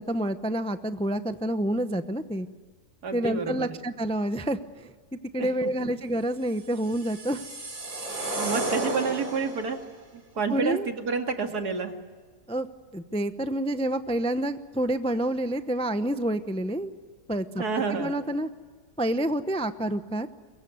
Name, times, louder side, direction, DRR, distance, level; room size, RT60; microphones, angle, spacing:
voice 1, 0.0-2.5 3.1-4.9 5.3-7.4 10.5-10.9 12.5-12.7 12.9-16.9 17.3-17.6 17.9-18.5 19.0-20.3, right 1 dB, 5° left, 10 dB, 0.6 m, -28 dB
voice 2, 3.0-3.7 5.4-5.7 8.4-9.8 10.1-12.0 17.6-18.2, right 5 dB, 75° right, 5 dB, 2.7 m, -29 dB
sound 1, 6.6-9.8, right 2 dB, 55° right, 4.3 m, -32 dB
23.0 x 22.5 x 9.5 m, 1.5 s
omnidirectional pair, 1.7 m